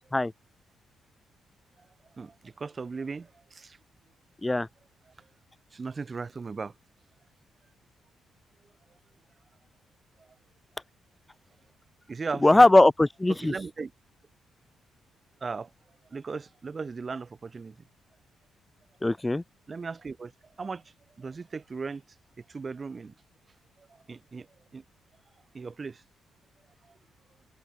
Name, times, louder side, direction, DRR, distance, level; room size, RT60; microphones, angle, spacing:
voice 1, 2.1-3.8 5.7-6.7 12.1-12.7 13.3-13.9 15.4-15.7 16.1-17.8 19.7-20.3 20.6-20.8 21.2-22.0 22.5-23.1 23.8-24.5 24.7-24.8 25.5-26.0 26.9-27.0, right 4 dB, 40° right, 0.7 m, -37 dB
voice 2, 12.4-13.5 19.0-19.4, left 2 dB, 15° left, 0.4 m, -19 dB
hypercardioid pair, 40°, 0 cm